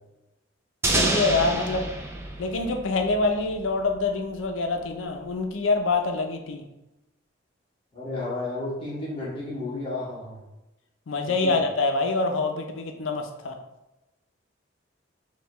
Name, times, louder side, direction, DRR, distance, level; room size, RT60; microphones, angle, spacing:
voice 1, 0.8-1.9 2.4-6.6 11.1-13.6, left 3 dB, 85° left, 4 dB, 0.5 m, -25 dB
sound 1, 0.8-3.6, right 2 dB, 15° right, 0.3 m, -28 dB
voice 2, 7.9-10.4 11.2-11.5, left 2 dB, 30° left, -7 dB, 1.1 m, -32 dB
5.3 x 2.3 x 3.0 m, 0.97 s
head